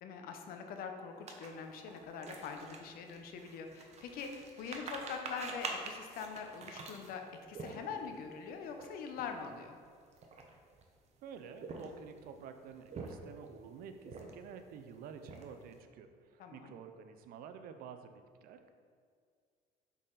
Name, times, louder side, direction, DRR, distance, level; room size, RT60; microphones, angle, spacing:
voice 1, 0.0-9.8 16.4-16.7, left 6 dB, 70° left, 5 dB, 0.7 m, -43 dB
sound 1, 1.3-8.2 8.7-8.9 9.1-9.4 10.0-10.8 11.5-12.2 12.7-13.5 14.0-14.6 14.9-15.7, right 4 dB, 45° right, 0.8 m, -46 dB
voice 2, 11.2-18.7, right 7 dB, 70° right, 8 dB, 0.5 m, -50 dB
6.0 x 4.1 x 3.8 m, 2.1 s
cardioid pair, 100°, 16 cm